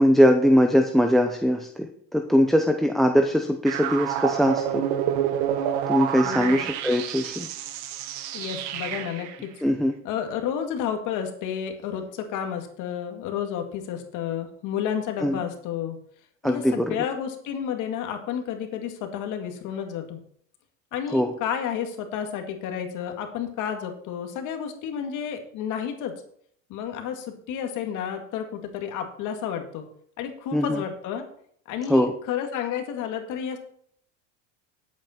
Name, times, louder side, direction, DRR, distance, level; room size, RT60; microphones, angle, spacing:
voice 1, 0.0-4.9 5.9-7.5 9.6-10.0 15.2-15.4 16.4-16.9 21.1-21.3 30.5-30.8 31.9-32.1, equal, ahead, 6 dB, 0.7 m, -21 dB
sound 1, 3.7-9.4, right 10 dB, 70° right, 1.4 m, -28 dB
voice 2, 6.2-6.6 8.3-9.5 10.0-16.0 16.4-20.2 20.9-26.1 26.7-29.9 30.2-31.2 31.7-33.6, left 8 dB, 55° left, 5 dB, 2.1 m, -31 dB
10.5 x 8.5 x 4.4 m, 0.63 s
supercardioid pair, 135°, 38 cm